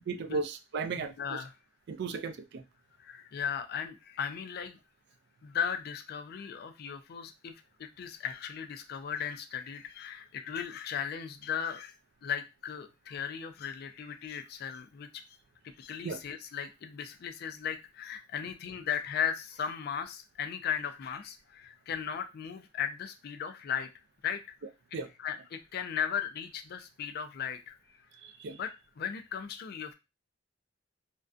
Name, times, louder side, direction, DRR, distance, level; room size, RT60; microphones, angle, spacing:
voice 1, 0.1-1.4 1.9-2.6 16.0-16.2 24.9-25.1 28.2-28.6, right 4 dB, 60° right, 9 dB, 0.3 m, -35 dB
voice 2, 1.0-1.5 3.0-4.8 5.4-7.5 7.8-11.9 12.2-15.1 15.8-23.9 24.2-24.4 25.2-27.8 28.5-28.7 29.0-29.9, left 8 dB, 55° left, 9 dB, 0.3 m, -36 dB
2.5 x 2.2 x 2.3 m, 0.25 s
head